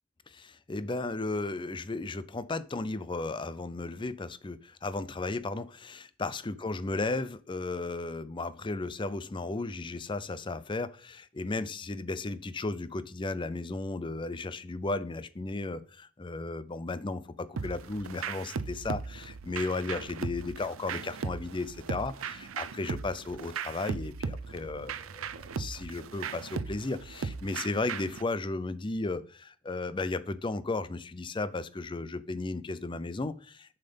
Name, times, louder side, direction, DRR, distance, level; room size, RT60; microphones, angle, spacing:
voice 1, 0.3-33.8, left 3 dB, 25° left, 15 dB, 0.5 m, -35 dB
sound 1, 17.6-28.2, right 5 dB, 80° right, 0.5 m, -38 dB
7.1 x 5.7 x 5.4 m, 0.43 s
head